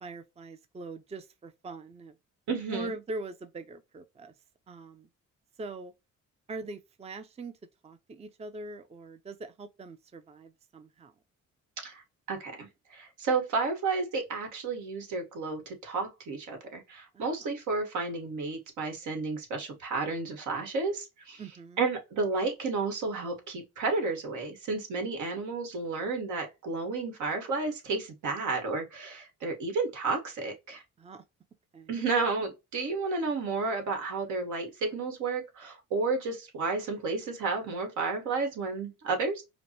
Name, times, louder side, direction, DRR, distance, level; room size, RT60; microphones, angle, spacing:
voice 1, 0.0-2.1 2.7-4.3 4.7-5.1 5.6-5.9 6.5-7.5 7.8-11.1 17.1-17.3 21.4-21.8 31.0-31.2 31.7-32.0, right 2 dB, 20° right, 0.5 m, -42 dB
voice 2, 2.5-3.0 11.8-12.0 12.3-21.4 21.8-30.8 31.9-39.4, right 3 dB, 75° right, 1.5 m, -32 dB
5.0 x 2.1 x 2.9 m
cardioid pair, 90°, 30 cm